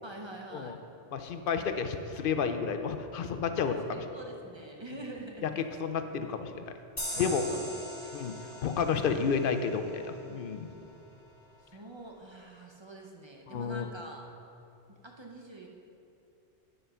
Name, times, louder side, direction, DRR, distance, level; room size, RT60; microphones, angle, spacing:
voice 1, 0.0-0.8 3.6-5.7 7.1-7.6 8.0-8.3 9.0-9.1 11.6-14.3 14.9-15.7, right 1 dB, 30° right, 1 dB, 0.7 m, -45 dB
voice 2, 1.1-4.0 5.4-6.7 7.2-7.4 8.1-8.3 8.6-10.7 13.5-13.9, left 6 dB, 60° left, 8 dB, 0.6 m, -31 dB
sound 1, 7.0-10.3, equal, 35° left, 2.2 m, -41 dB
10.0 x 5.4 x 5.6 m, 2.7 s
omnidirectional pair, 1.2 m